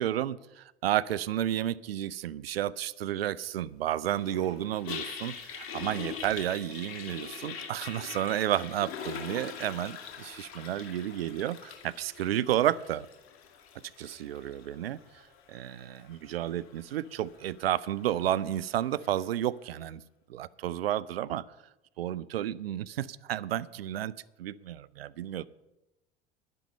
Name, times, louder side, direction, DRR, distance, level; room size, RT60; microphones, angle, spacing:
voice 1, 0.0-13.1 14.0-15.0 15.5-20.0 20.3-21.5 22.0-25.5, right 12 dB, 75° right, 16 dB, 0.5 m, -31 dB
Toilet flush, 4.0-19.3, left 7 dB, 45° left, 2.1 m, -44 dB
11.0 x 10.5 x 5.4 m, 0.98 s
figure-of-eight pair, 70°, 31 cm